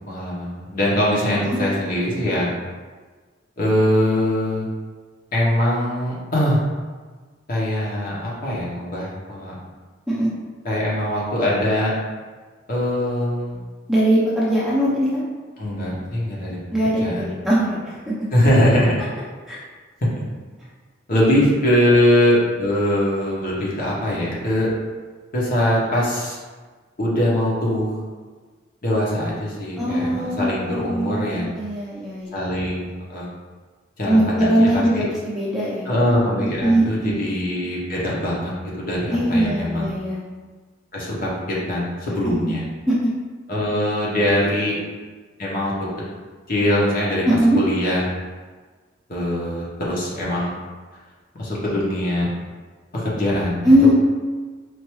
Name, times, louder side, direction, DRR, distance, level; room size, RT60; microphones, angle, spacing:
voice 1, 0.1-2.5 3.6-4.7 5.3-6.6 7.5-9.5 10.6-11.9 12.7-13.6 15.6-16.6 17.0-17.3 18.3-19.0 20.2-20.3 21.1-24.7 25.3-26.4 27.0-27.9 28.8-31.5 32.3-33.3 34.0-35.0 35.9-38.5 38.8-39.9 40.9-42.6 43.5-44.8 45.4-45.7 46.5-47.2 47.5-48.0 49.1-50.5 51.4-52.3 52.9-53.7, left 1 dB, 45° left, -6 dB, 1.0 m, -22 dB
voice 2, 13.9-15.2 16.7-18.1 19.5-19.6 29.8-32.4 34.0-35.9 36.4-37.1 39.1-40.2 42.2-42.5 42.9-43.1 47.2-47.6 53.6-53.9, equal, ahead, -9 dB, 0.7 m, -20 dB
4.5 x 2.6 x 3.1 m, 1.4 s
head